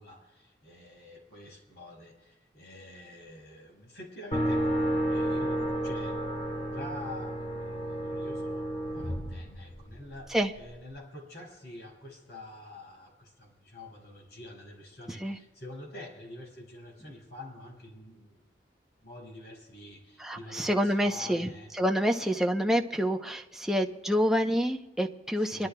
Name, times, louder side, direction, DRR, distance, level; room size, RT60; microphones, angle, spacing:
voice 1, 0.0-6.2 6.7-18.5 19.0-21.7 22.2-22.4 25.4-25.7, left 1 dB, 65° left, -1 dB, 5.3 m, -47 dB
sound 1, 4.3-10.2, right 1 dB, 35° left, 1.8 m, -31 dB
voice 2, 20.2-25.7, equal, ahead, 3 dB, 0.7 m, -27 dB
25.5 x 12.5 x 2.3 m, 1.1 s
head